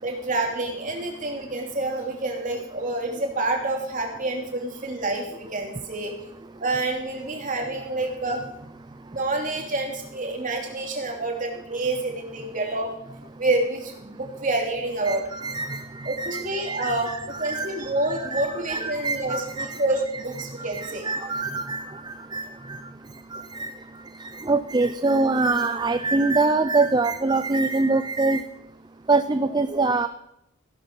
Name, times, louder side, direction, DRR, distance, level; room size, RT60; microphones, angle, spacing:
voice 1, 0.0-6.1 6.6-8.4 9.1-12.9 13.4-15.3 16.0-21.1, right 2 dB, 40° right, 2 dB, 2.9 m, -28 dB
voice 2, 15.1-17.8 18.3-19.8 20.6-22.9 23.3-23.7 24.2-28.4 29.1-30.1, right 3 dB, 20° right, 10 dB, 0.5 m, -25 dB
16.0 x 11.5 x 5.4 m, 0.80 s
head